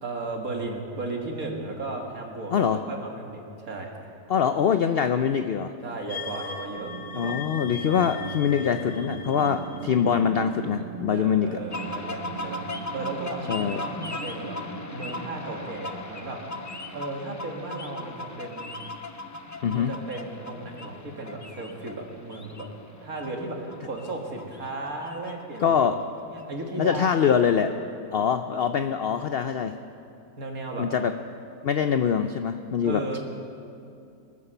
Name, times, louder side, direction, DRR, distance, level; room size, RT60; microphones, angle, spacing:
voice 1, 0.0-3.9 5.8-7.4 7.8-8.0 11.1-14.6 14.9-18.8 19.8-22.7 23.0-25.8 26.2-27.2 27.6-27.7 30.4-30.9 32.8-33.2, right 2 dB, 65° right, 1 dB, 2.3 m, -35 dB
voice 2, 4.3-5.7 7.1-11.6 13.5-13.8 19.6-19.9 25.6-26.0 26.8-27.7 28.1-29.7 30.8-31.1 31.6-33.2, left 7 dB, 75° left, 8 dB, 0.5 m, -24 dB
sound 1, 6.1-10.5, left 6 dB, 50° left, 1.2 m, -39 dB
sound 2, 6.8-18.9, right 8 dB, 50° right, 0.6 m, -41 dB
sound 3, 11.7-26.9, left 2 dB, 25° left, 0.3 m, -38 dB
20.0 x 9.9 x 6.8 m, 2.6 s
omnidirectional pair, 1.6 m